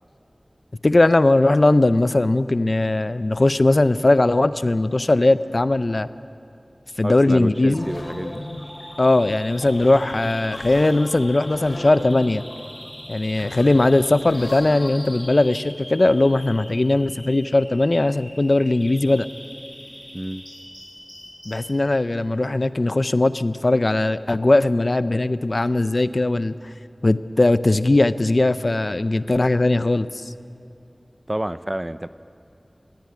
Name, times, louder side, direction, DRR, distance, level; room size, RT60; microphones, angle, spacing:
voice 1, 0.8-6.1 7.0-7.8 9.0-12.4 13.1-19.3 21.5-26.5 27.0-30.3, left 2 dB, 55° left, 14 dB, 0.5 m, -19 dB
voice 2, 7.0-8.5 20.1-20.4 31.3-32.1, right 1 dB, 20° right, 14 dB, 0.5 m, -28 dB
sound 1, 7.7-15.2, left 1 dB, 80° left, 2.5 m, -36 dB
Bird vocalization bird call bird song, 7.8-21.7, equal, 10° left, 7.1 m, -43 dB
19.5 x 15.5 x 9.5 m, 2.6 s
wide cardioid pair, 50°, 0 cm